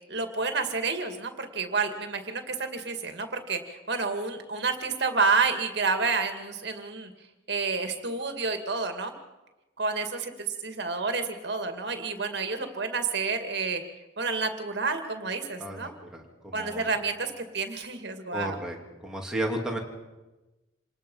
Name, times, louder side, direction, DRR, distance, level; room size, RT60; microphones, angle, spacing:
voice 1, 0.1-7.1 7.5-9.1 9.8-10.3 10.6-13.8 14.2-15.9 16.5-18.6, right 4 dB, 55° right, 6 dB, 2.3 m, -29 dB
voice 2, 15.6-16.9 18.3-18.8 19.0-19.8, right 1 dB, 5° right, -1 dB, 2.9 m, -33 dB
27.0 x 19.5 x 5.6 m, 1.1 s
head